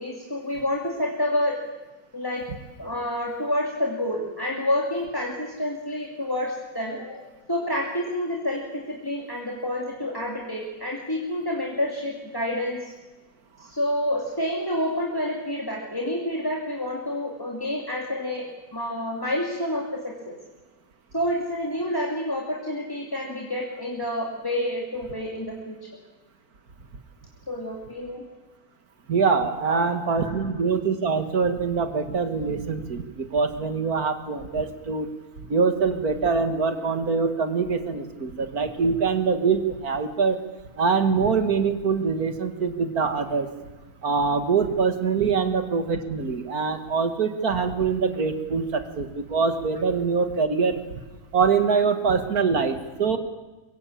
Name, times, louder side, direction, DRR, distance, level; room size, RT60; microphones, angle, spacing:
voice 1, 0.0-1.6 2.1-2.4 2.8-12.9 13.6-20.3 21.1-25.9 27.5-28.2 29.6-30.4, left 1 dB, 15° left, 0 dB, 2.8 m, -29 dB
voice 2, 29.1-35.1 35.5-40.4 40.8-43.5 44.0-50.8 51.3-53.2, right 5 dB, 85° right, 8 dB, 2.4 m, -24 dB
24.0 x 22.5 x 8.7 m, 1.2 s
omnidirectional pair, 1.5 m